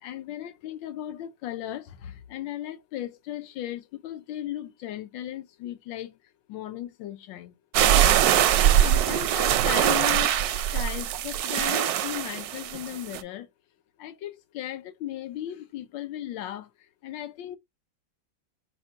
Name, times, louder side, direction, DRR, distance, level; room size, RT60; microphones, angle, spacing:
voice 1, 0.0-6.2 6.5-7.5 8.6-10.4 10.7-13.5 14.0-16.7 17.0-17.6, left 12 dB, 80° left, 1.3 m, -36 dB
sound 1, 7.7-13.2, right 11 dB, 75° right, 0.9 m, -22 dB
5.3 x 2.2 x 4.4 m
omnidirectional pair, 2.0 m